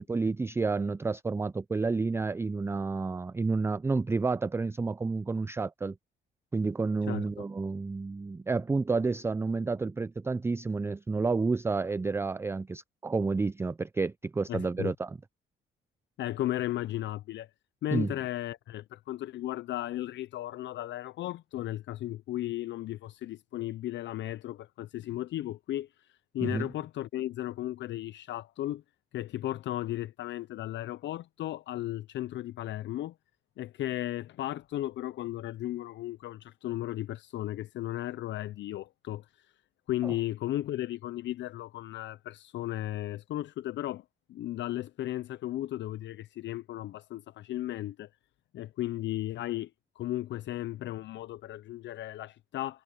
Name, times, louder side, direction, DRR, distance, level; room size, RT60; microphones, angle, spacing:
voice 1, 0.0-6.0 6.5-15.2 17.9-18.1 26.4-26.7 40.0-40.1, right 4 dB, 15° right, 0.3 m, -30 dB
voice 2, 14.5-14.9 16.2-17.5 17.8-28.8 29.1-33.1 33.6-39.5 39.9-48.1 48.5-49.7 50.0-52.8, left 14 dB, 65° left, 0.5 m, -35 dB
cardioid pair, 90°, 20 cm